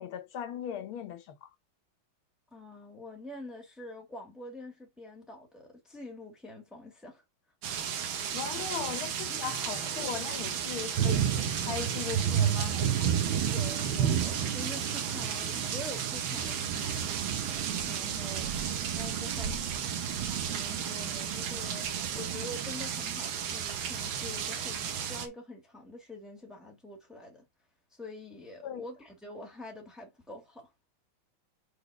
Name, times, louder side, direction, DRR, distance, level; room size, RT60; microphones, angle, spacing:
voice 1, 0.0-1.5 8.3-13.2 28.6-28.8, left 8 dB, 80° left, 1.7 m, -38 dB
voice 2, 2.5-7.2 8.6-8.7 9.3-9.4 13.5-18.6 19.0-19.8 20.5-27.5 27.9-30.7, left 1 dB, ahead, 1.8 m, -46 dB
sound 1, 7.6-25.3, right 8 dB, 75° right, 1.7 m, -31 dB
5.0 x 4.1 x 4.7 m
omnidirectional pair, 2.3 m